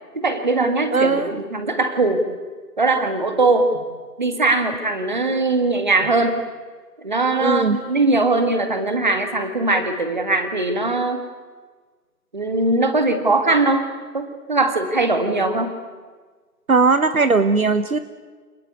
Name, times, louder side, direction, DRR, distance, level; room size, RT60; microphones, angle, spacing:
voice 1, 0.1-2.3 2.8-3.8 4.2-6.4 7.0-11.2 12.3-13.9 14.1-15.8, right 2 dB, 30° right, 7 dB, 1.9 m, -20 dB
voice 2, 0.9-1.4 7.4-7.8 16.7-18.0, right 4 dB, 60° right, 11 dB, 1.2 m, -18 dB
28.0 x 20.0 x 8.6 m, 1.5 s
figure-of-eight pair, 175°, 49 cm